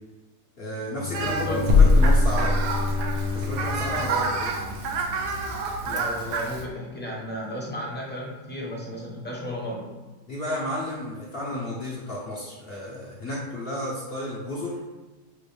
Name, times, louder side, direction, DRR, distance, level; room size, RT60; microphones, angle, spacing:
voice 1, 0.6-2.5 3.3-4.5 10.3-14.8, left 1 dB, 50° left, -5 dB, 0.8 m, -32 dB
Bowed string instrument, 0.8-5.3, left 6 dB, 85° left, 1.2 m, -33 dB
Fowl, 1.1-6.6, right 4 dB, 75° right, 1.1 m, -30 dB
voice 2, 1.2-1.7 5.8-10.0, equal, 10° left, -4 dB, 0.7 m, -34 dB
sound 1, 1.7-3.3, left 3 dB, 50° right, 0.6 m, -18 dB
6.1 x 2.5 x 3.4 m, 1.2 s
omnidirectional pair, 1.8 m